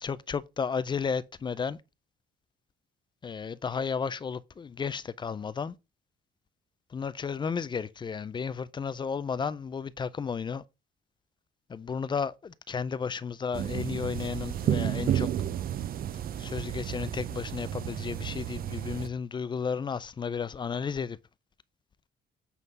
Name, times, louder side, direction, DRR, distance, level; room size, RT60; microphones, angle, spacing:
voice 1, 0.0-1.8 3.2-5.7 6.9-10.6 11.7-15.3 16.4-21.2, left 6 dB, 25° left, 0.4 m, -33 dB
sound 1, 13.5-19.1, right 10 dB, 45° right, 0.5 m, -32 dB
8.2 x 3.8 x 5.3 m
cardioid pair, 160°, 21 cm